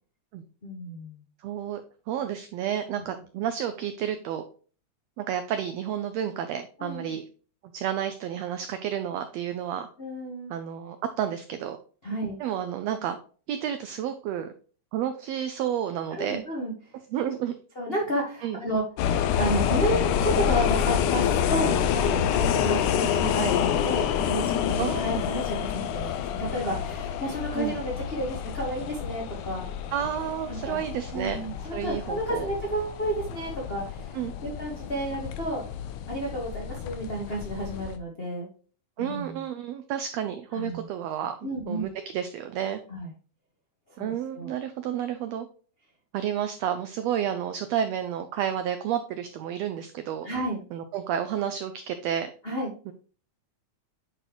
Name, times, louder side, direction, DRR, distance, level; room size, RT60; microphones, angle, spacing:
voice 1, 0.6-1.2 3.0-3.1 6.8-7.1 10.0-10.5 12.0-12.4 16.1-16.7 17.7-18.8 19.4-29.6 30.5-30.8 31.1-35.6 36.1-38.5 39.0-39.4 40.5-40.8 41.4-41.9 42.9-43.1 44.0-44.5 50.2-50.6 52.4-52.7, right 1 dB, 60° left, -3 dB, 0.6 m, -31 dB
voice 2, 1.4-1.8 2.1-4.4 5.2-7.2 7.7-9.9 10.5-11.8 12.4-13.2 13.5-14.5 14.9-16.4 17.1-17.5 18.4-18.6 23.4-23.5 24.8-25.2 27.6-27.7 29.9-31.4 31.7-32.5 34.1-34.3 39.0-42.8 44.0-45.5 46.1-50.3 50.7-52.3 52.9-53.0, right 9 dB, 90° right, 9 dB, 1.4 m, -31 dB
sound 1, 19.0-38.0, left 9 dB, 80° left, 2.1 m, -28 dB
8.9 x 4.0 x 3.0 m, 0.40 s
omnidirectional pair, 3.6 m